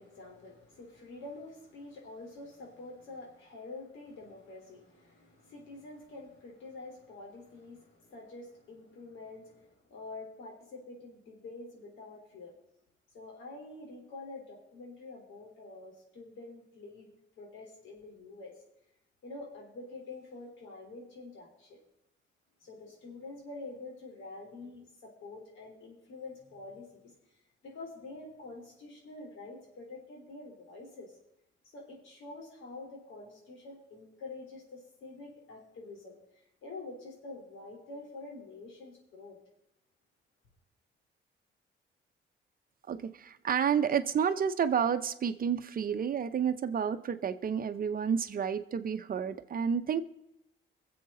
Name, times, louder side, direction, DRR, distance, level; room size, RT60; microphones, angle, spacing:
voice 1, 0.0-12.6 13.1-18.6 19.2-21.8 22.6-27.1 27.6-31.2 31.6-39.4, left 3 dB, 80° left, 0 dB, 3.6 m, -47 dB
voice 2, 42.9-50.0, right 7 dB, 45° right, 10 dB, 0.8 m, -30 dB
23.0 x 7.8 x 3.8 m, 0.81 s
cardioid pair, 90°, 20 cm